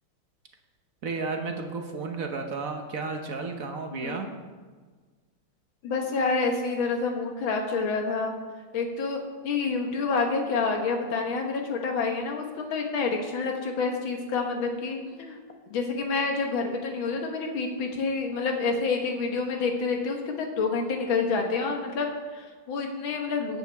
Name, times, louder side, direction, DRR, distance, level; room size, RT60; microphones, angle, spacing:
voice 1, 1.0-4.3, right 4 dB, 55° right, 4 dB, 1.0 m, -33 dB
voice 2, 3.9-4.4 5.8-8.3 8.7-9.2 9.4-15.4 15.7-23.6, left 4 dB, 70° left, 3 dB, 2.0 m, -28 dB
16.5 x 8.4 x 3.5 m, 1.4 s
omnidirectional pair, 2.3 m